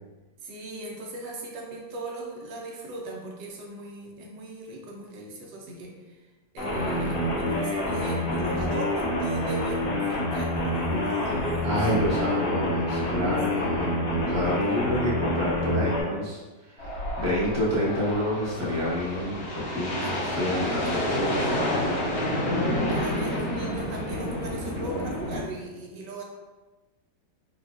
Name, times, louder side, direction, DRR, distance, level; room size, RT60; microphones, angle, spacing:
voice 1, 0.4-6.2 6.5-11.9 13.5-14.1 14.6-15.2 20.8-20.9 22.9-26.2, right 2 dB, 75° right, -1 dB, 1.2 m, -38 dB
sound 1, 6.6-16.0, left 1 dB, 60° left, 1.1 m, -27 dB
voice 2, 11.6-22.1 23.2-23.3, equal, 20° right, -8 dB, 0.4 m, -29 dB
sound 2, 16.8-25.4, left 1 dB, 85° left, 1.7 m, -29 dB
4.0 x 2.3 x 2.4 m, 1.2 s
omnidirectional pair, 1.9 m